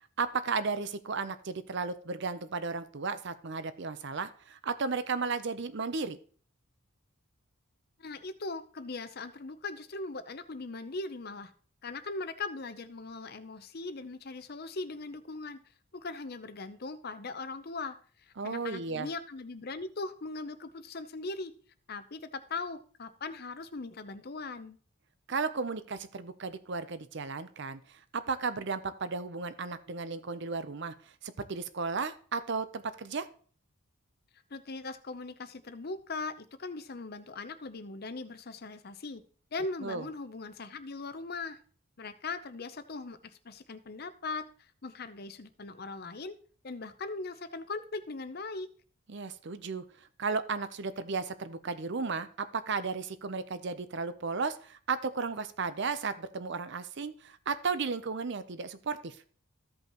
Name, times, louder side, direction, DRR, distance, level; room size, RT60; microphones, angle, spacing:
voice 1, 0.2-6.2 18.4-19.1 25.3-30.9 31.2-33.3 39.8-40.1 49.1-59.2, right 4 dB, 55° right, 13 dB, 0.6 m, -34 dB
voice 2, 8.0-11.5 11.8-15.6 15.9-21.5 21.9-24.8 34.5-39.2 39.5-41.6 42.0-46.4 46.6-48.7, left 3 dB, 45° left, 11 dB, 0.7 m, -40 dB
15.0 x 5.4 x 3.0 m, 0.43 s
head